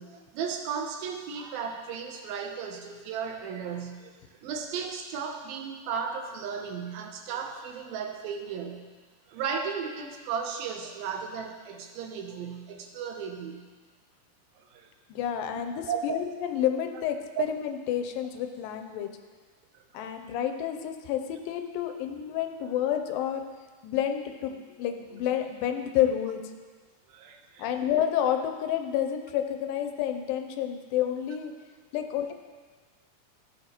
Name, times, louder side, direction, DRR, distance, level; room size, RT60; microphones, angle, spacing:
voice 1, 0.0-4.1 4.4-8.9 9.3-13.7 14.6-14.9 15.9-16.2 17.4-17.5 19.7-20.1 27.1-27.7, right 6 dB, 90° right, 4 dB, 2.7 m, -35 dB
voice 2, 15.1-19.1 19.9-23.5 23.8-26.4 27.6-31.5 31.9-32.3, left 10 dB, 85° left, 6 dB, 2.4 m, -29 dB
14.5 x 8.1 x 3.0 m, 1.4 s
omnidirectional pair, 4.1 m